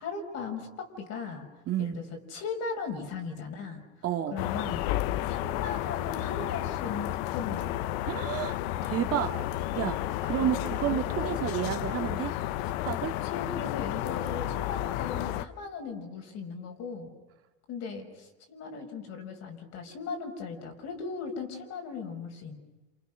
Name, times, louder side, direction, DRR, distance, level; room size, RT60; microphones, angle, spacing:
voice 1, 0.0-1.5 1.8-2.0 2.3-3.8 4.3-4.8 5.2-7.8 11.2-11.4 13.0-17.1 17.7-22.6, left 5 dB, 55° left, 3 dB, 5.5 m, -38 dB
voice 2, 1.7-2.0 4.0-4.4 8.0-8.5 8.8-9.3 9.7-12.3 12.8-13.1, right 11 dB, 50° right, 6 dB, 2.2 m, -30 dB
sound 1, 4.4-15.4, left 14 dB, 80° left, 0.9 m, -32 dB
28.0 x 28.0 x 6.2 m, 1.1 s
cardioid pair, 125°, 31 cm